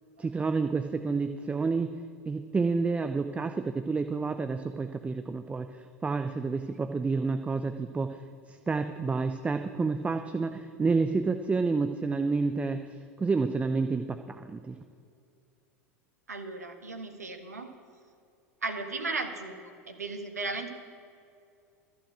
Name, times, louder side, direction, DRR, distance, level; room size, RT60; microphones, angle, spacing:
voice 1, 0.2-1.9 2.3-8.2 8.5-12.8 13.2-14.8, right 4 dB, 15° right, 8 dB, 0.6 m, -29 dB
voice 2, 16.3-17.7 18.6-20.7, right 3 dB, 85° right, 5 dB, 1.4 m, -36 dB
14.0 x 5.6 x 8.9 m, 2.4 s
hypercardioid pair, 85°, 8 cm